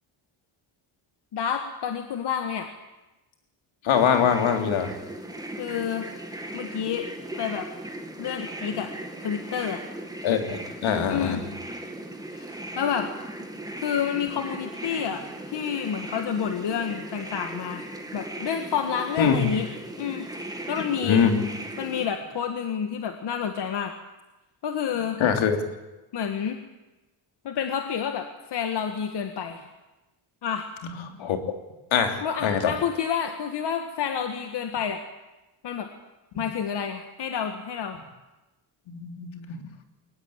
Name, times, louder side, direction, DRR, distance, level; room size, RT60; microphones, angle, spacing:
voice 1, 1.3-2.7 5.6-6.1 6.5-7.1 7.4-7.7 8.2-8.9 9.2-9.8 11.1-11.4 12.3-13.1 13.8-17.9 18.1-19.7 20.0-21.2 21.8-23.9 24.6-25.2 26.1-26.6 27.4-29.7 30.4-30.7 32.2-35.0 35.6-35.9 36.3-38.0, left 8 dB, 55° left, 6 dB, 1.9 m, -29 dB
voice 2, 3.8-5.0 10.2-11.4 19.2-19.5 21.1-21.5 25.2-25.6 30.8-31.4 31.9-32.7 36.3-36.4 38.9-39.7, left 7 dB, 75° left, 5 dB, 3.3 m, -23 dB
sound 1, 3.9-22.1, right 1 dB, 10° right, 2.6 m, -38 dB
23.0 x 19.0 x 8.9 m, 1.1 s
cardioid pair, 135°, 47 cm